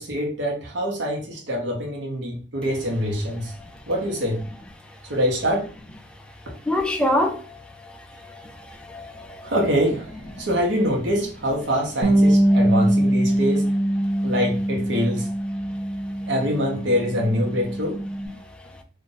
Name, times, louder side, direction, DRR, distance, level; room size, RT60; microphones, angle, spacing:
voice 1, 0.0-3.5 3.9-4.4 5.1-5.7 9.4-13.6 14.2-15.3 16.3-18.0, equal, 80° right, 1.0 m, -24 dB
voice 2, 6.7-7.6 7.8-8.0 8.3-9.5 10.4-10.5 12.5-12.9, left 1 dB, 5° left, 0.3 m, -27 dB
Bass guitar, 12.0-18.3, right 1 dB, 60° right, 0.7 m, -22 dB
2.5 x 2.5 x 3.9 m
head